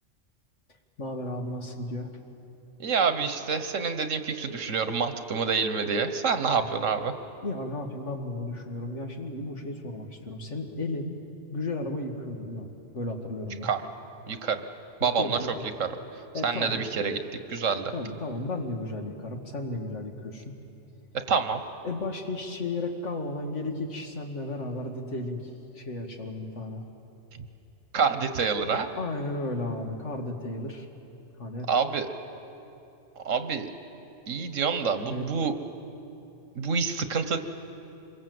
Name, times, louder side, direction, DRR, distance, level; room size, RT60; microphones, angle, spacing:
voice 1, 1.0-2.1 6.6-6.7 7.4-11.2 11.5-12.7 12.9-13.7 15.0-15.6 16.3-16.8 17.9-20.6 21.8-26.8 28.9-30.9 31.4-31.7 35.0-35.2, left 2 dB, 70° left, 3 dB, 2.3 m, -34 dB
voice 2, 2.8-7.1 13.6-13.8 14.3-14.6 15.0-15.4 15.8-15.9 16.4-17.2 17.5-17.9 21.3-21.6 27.9-28.9 31.7-32.1 33.2-33.7 34.3-35.5 36.5-37.4, right 5 dB, 85° right, 9 dB, 1.6 m, -27 dB
26.0 x 23.0 x 7.9 m, 2.8 s
omnidirectional pair, 1.3 m